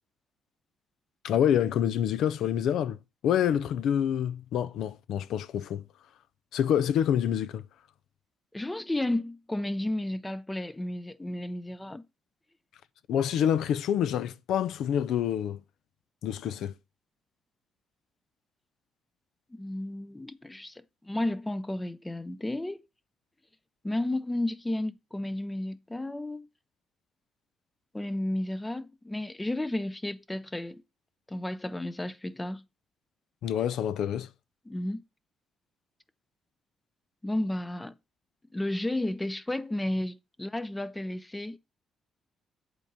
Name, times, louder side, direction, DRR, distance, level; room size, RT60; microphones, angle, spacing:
voice 1, 1.2-3.0 3.2-5.8 6.5-7.6 13.1-15.6 16.2-16.7 33.4-34.3, left 9 dB, 80° left, 0.5 m, -27 dB
voice 2, 8.5-12.0 19.5-22.8 23.8-26.5 27.9-30.8 31.3-32.6 34.7-35.0 37.2-37.9 38.5-41.6, left 1 dB, 15° left, 0.5 m, -32 dB
8.1 x 3.7 x 6.7 m
cardioid pair, 90°, 0 cm